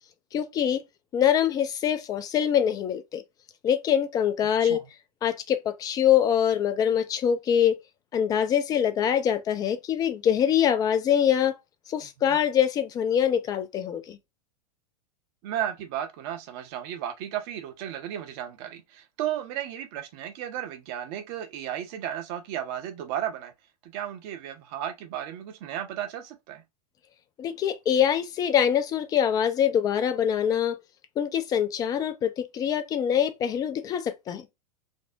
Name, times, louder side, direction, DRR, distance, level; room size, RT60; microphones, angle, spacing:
voice 1, 0.3-0.8 1.1-3.2 3.6-4.8 5.2-7.8 8.1-11.6 11.9-14.2 27.4-30.8 31.2-34.5, left 9 dB, 20° left, 0.4 m, -24 dB
voice 2, 15.4-23.5 23.8-26.6, right 11 dB, 40° right, 0.6 m, -34 dB
3.3 x 2.0 x 2.6 m
figure-of-eight pair, 95°, 20 cm